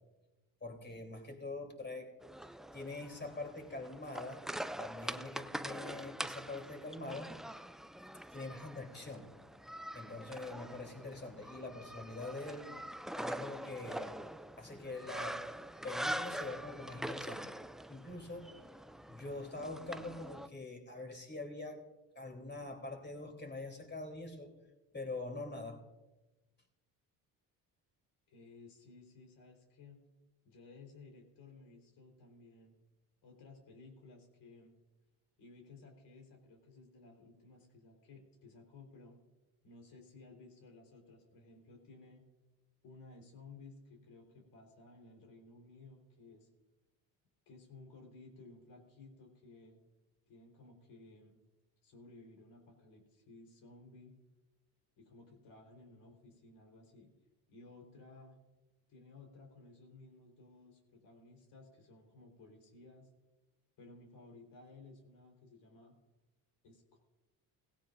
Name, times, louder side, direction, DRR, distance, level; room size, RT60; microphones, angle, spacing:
voice 1, 0.6-2.1 2.7-4.4 4.8-7.3 8.3-9.3 9.9-12.7 13.2-14.2 14.6-15.4 15.8-17.5 17.9-18.5 19.0-21.8 22.1-24.5 24.9-25.8, left 2 dB, 25° left, 2 dB, 3.4 m, -44 dB
sound 1, 2.2-20.5, right 1 dB, ahead, 0.3 m, -44 dB
voice 2, 28.3-30.0 30.4-32.7 33.2-34.7 35.4-39.2 39.6-42.2 42.8-46.5 47.5-49.8 50.3-51.4 51.8-54.1 55.0-57.1 57.5-58.4 58.9-63.1 63.8-65.9 66.6-67.0, left 3 dB, 70° left, 1 dB, 4.2 m, -57 dB
17.5 x 16.5 x 2.6 m, 1.1 s
supercardioid pair, 80°, 43 cm